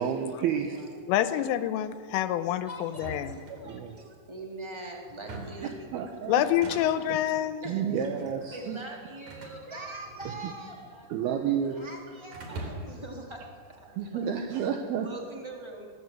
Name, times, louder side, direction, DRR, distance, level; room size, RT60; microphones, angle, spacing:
voice 1, 0.0-0.8 3.7-3.9 5.4-5.5 5.9-6.4 7.1-7.2 7.7-8.8 11.1-11.8 14.0-15.1, right 8 dB, 70° right, 4 dB, 2.4 m, -30 dB
voice 2, 0.6-1.1 2.7-5.9 6.1-6.3 7.6-8.1 8.5-11.1 11.4-14.3 15.0-15.9, right 2 dB, 15° right, 0 dB, 1.0 m, -43 dB
voice 3, 1.1-3.3 6.3-7.6, left 12 dB, 80° left, 11 dB, 3.2 m, -27 dB
sound 1, 2.9-4.1 5.1-5.7 6.4-7.2 8.0-8.4 9.3-10.8 11.0-11.8 12.3-13.1, right 2 dB, 40° right, 4.2 m, -43 dB
23.5 x 18.0 x 7.6 m, 2.1 s
omnidirectional pair, 5.9 m